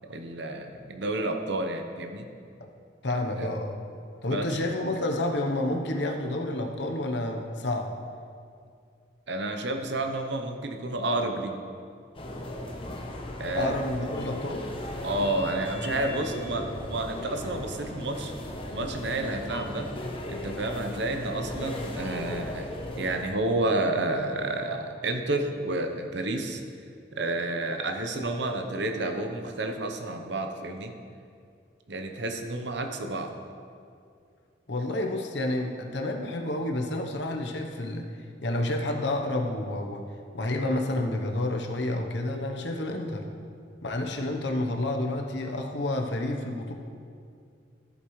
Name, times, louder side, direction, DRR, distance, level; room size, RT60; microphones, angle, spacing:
voice 1, 0.0-2.3 3.4-3.5 4.3-4.6 9.3-11.6 13.4-13.7 15.0-18.3 18.7-19.9 20.3-22.7 23.0-26.6 27.2-30.9 31.9-33.3, right 2 dB, 70° right, 5 dB, 0.9 m, -30 dB
voice 2, 3.0-3.8 4.2-7.9 13.5-14.6 34.7-38.0 38.4-40.0 40.3-43.2 43.8-46.7, left 1 dB, 70° left, 3 dB, 1.0 m, -29 dB
sound 1, 12.1-23.2, left 1 dB, 30° left, 0.9 m, -37 dB
14.0 x 8.0 x 3.2 m, 2.3 s
head